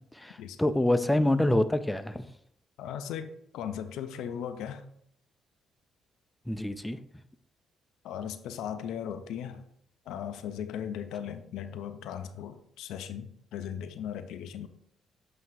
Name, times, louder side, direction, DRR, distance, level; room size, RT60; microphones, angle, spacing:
voice 1, 0.1-2.2 6.5-7.0, left 1 dB, 10° left, 0.4 m, -26 dB
voice 2, 2.8-4.9 8.0-9.7 10.1-14.7, left 9 dB, 90° left, 0.5 m, -37 dB
7.8 x 2.8 x 4.6 m
cardioid pair, 90°, 0 cm